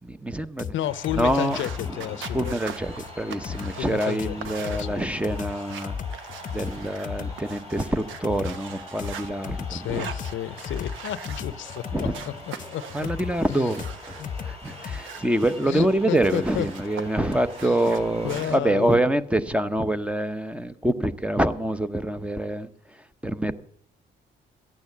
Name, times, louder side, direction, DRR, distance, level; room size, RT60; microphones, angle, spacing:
voice 1, 0.0-0.7 1.2-1.6 2.3-5.9 6.5-10.1 11.9-12.1 12.9-14.2 14.4-22.7 23.2-23.6, right 1 dB, 5° right, 0.8 m, -25 dB
sound 1, 0.6-15.0, left 7 dB, 40° left, 0.8 m, -35 dB
voice 2, 0.7-2.5 3.8-5.1 9.7-13.1 13.5-13.7 14.2-14.3 15.7-16.7 17.6-17.8 18.2-19.0, left 11 dB, 75° left, 0.6 m, -32 dB
sound 2, 0.8-18.4, left 1 dB, 30° right, 5.7 m, -44 dB
sound 3, 1.2-9.3 9.8-11.8 12.1-14.3 14.6-17.0 17.3-18.6, right 7 dB, 80° right, 1.1 m, -42 dB
13.5 x 8.8 x 7.1 m
cardioid pair, 90°, 20 cm